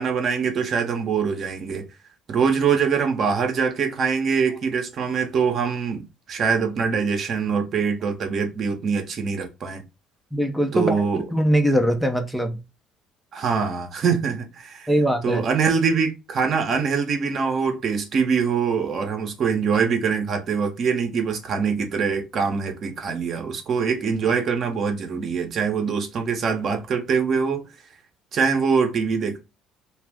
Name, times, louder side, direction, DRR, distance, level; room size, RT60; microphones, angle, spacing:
voice 1, 0.0-1.8 2.3-9.8 10.7-11.2 13.3-14.9 15.2-27.7 28.3-29.4, right 6 dB, 50° right, 0.8 m, -23 dB
voice 2, 10.3-11.0 11.3-12.6 14.9-15.4, equal, ahead, 0.6 m, -21 dB
2.4 x 2.4 x 3.4 m
hypercardioid pair, 65°, 0 cm